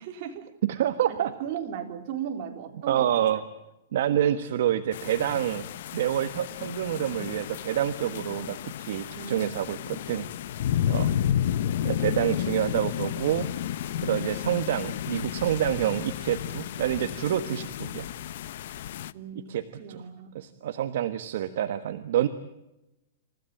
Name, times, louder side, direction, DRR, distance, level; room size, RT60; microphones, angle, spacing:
voice 1, 0.0-0.5 1.1-3.4 9.1-9.5 9.8-9.9 11.0-11.2 19.1-19.5 19.8-20.3, right 8 dB, 40° right, 3 dB, 4.0 m, -37 dB
voice 2, 0.6-1.3 2.9-3.4 3.9-10.3 10.9-11.1 11.8-13.5 14.0-18.1 19.5-20.0 20.3-22.3, right 11 dB, 60° right, 10 dB, 1.3 m, -27 dB
sound 1, 4.9-19.1, left 10 dB, 55° left, 0.8 m, -32 dB
28.5 x 16.0 x 8.7 m, 0.93 s
hypercardioid pair, 165°, 0 cm